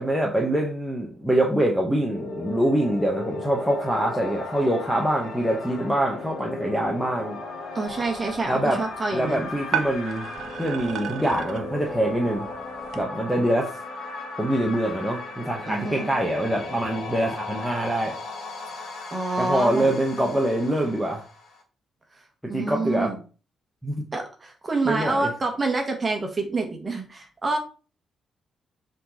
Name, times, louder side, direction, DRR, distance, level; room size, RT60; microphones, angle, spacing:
voice 1, 0.0-7.4 8.5-8.8 9.1-10.3 10.6-12.5 12.9-13.7 14.4-18.1 19.4-21.2 22.4-23.1 23.8-24.1 24.8-25.3, right 1 dB, ahead, -2 dB, 0.9 m, -24 dB
sound 1, 1.8-21.6, left 3 dB, 65° left, 1.7 m, -36 dB
voice 2, 7.7-9.5 15.7-16.1 19.1-20.0 22.5-23.2 24.1-27.6, right 3 dB, 20° right, 3 dB, 1.5 m, -27 dB
sound 2, 7.9-13.0, right 8 dB, 60° right, 0.9 m, -35 dB
7.4 x 3.9 x 4.1 m, 0.36 s
cardioid pair, 180°, 0 cm